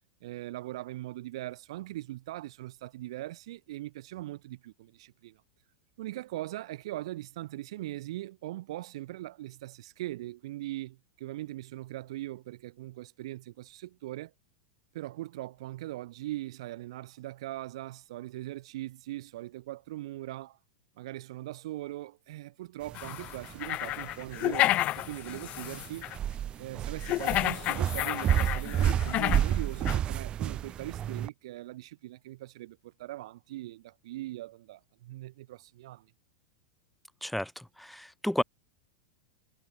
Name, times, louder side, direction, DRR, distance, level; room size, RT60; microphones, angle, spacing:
voice 1, 0.2-5.4 6.0-14.3 14.9-20.6 21.0-26.1 26.6-36.1, right 16 dB, 55° right, 3.3 m, -40 dB
sound 1, 22.8-31.3, right 10 dB, 25° right, 3.1 m, -31 dB
sound 2, 22.9-26.2 27.0-29.5 29.9-30.0, left 16 dB, 35° left, 1.4 m, -31 dB
voice 2, 37.2-38.4, left 1 dB, ahead, 4.8 m, -32 dB
figure-of-eight pair, 90°, 4 cm